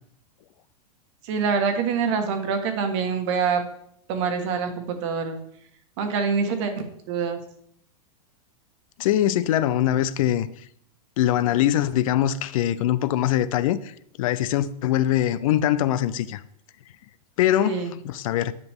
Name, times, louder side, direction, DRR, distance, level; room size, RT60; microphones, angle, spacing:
voice 1, 1.2-3.6 4.1-5.4 6.0-6.7 7.1-7.4 17.6-17.9, right 5 dB, 50° right, 1.5 m, -25 dB
voice 2, 9.0-10.5 11.2-13.9 14.2-16.4 17.4-18.5, left 12 dB, 60° left, 0.5 m, -22 dB
10.0 x 6.0 x 3.6 m
supercardioid pair, 155°, 20 cm